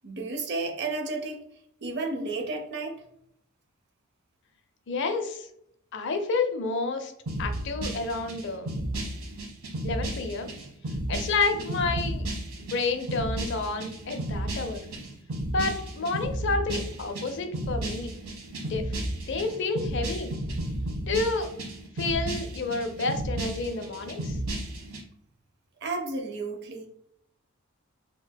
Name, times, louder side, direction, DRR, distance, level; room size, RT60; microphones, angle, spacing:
voice 1, 0.0-1.4 1.8-3.0 25.8-26.9, right 3 dB, 50° right, 3 dB, 0.6 m, -32 dB
voice 2, 4.9-5.5 5.9-7.1 7.4-8.7 9.8-10.5 11.1-12.3 12.7-14.9 15.5-18.1 18.7-19.0 19.3-20.3 21.1-21.5 22.0-24.4, left 3 dB, 55° left, 7 dB, 0.5 m, -29 dB
sound 1, 7.3-25.0, right 1 dB, 80° right, 1.0 m, -33 dB
4.4 x 2.6 x 2.2 m, 0.72 s
head